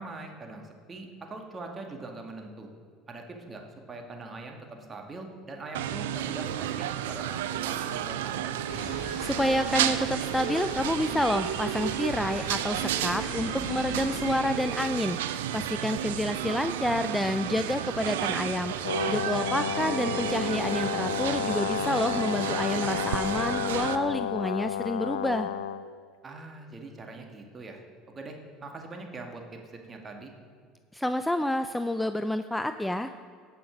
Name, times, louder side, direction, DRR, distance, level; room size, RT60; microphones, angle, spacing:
voice 1, 0.0-2.7 3.1-3.6 3.9-8.6 26.2-29.6 29.8-30.3, right 3 dB, 30° right, 3 dB, 1.9 m, -42 dB
sound 1, 5.7-24.0, right 11 dB, 85° right, 0.5 m, -32 dB
sound 2, 8.7-14.4, left 3 dB, 45° left, 1.8 m, -42 dB
voice 2, 9.0-18.7 19.1-25.5 30.9-33.1, left 1 dB, 5° left, 10 dB, 0.4 m, -29 dB
Brass instrument, 18.8-25.9, left 10 dB, 90° left, 0.4 m, -31 dB
17.0 x 5.8 x 5.1 m, 2.1 s
hypercardioid pair, 80°, 0 cm